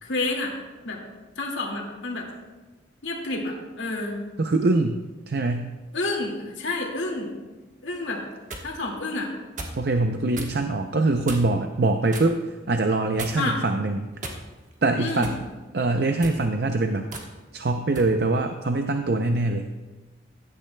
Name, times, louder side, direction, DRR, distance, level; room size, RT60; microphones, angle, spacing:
voice 1, 0.0-0.5 0.8-1.0 1.4-2.3 3.0-4.2 5.9-7.3 7.8-8.2 8.6-9.3 13.3-13.6 15.0-15.3, left 2 dB, 70° left, 0 dB, 2.1 m, -29 dB
voice 2, 4.4-5.7 9.8-14.1 14.8-15.4 15.7-17.1 17.5-19.7, right 2 dB, 55° right, 5 dB, 0.5 m, -23 dB
sound 1, 8.1-8.7 9.6-9.8 10.3-10.6 11.2-11.6 12.1-12.3 13.2-13.6 14.2-14.7 15.2-15.4 16.1-16.4 17.1-17.3 17.9-18.1, right 2 dB, 40° right, 1.3 m, -36 dB
16.5 x 12.0 x 2.2 m, 1.2 s
head